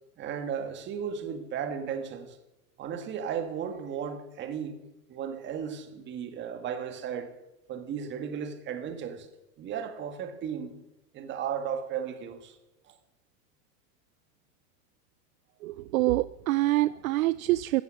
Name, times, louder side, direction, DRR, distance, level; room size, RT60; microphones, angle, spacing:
voice 1, 0.2-2.4 2.8-4.8 5.1-7.3 7.7-9.3 9.6-10.8 11.1-12.6 12.9-13.0, right 7 dB, 25° right, 1.8 m, -35 dB
voice 2, 15.6-17.8, right 17 dB, 60° right, 0.5 m, -26 dB
15.5 x 14.5 x 6.5 m
supercardioid pair, 150°, 47 cm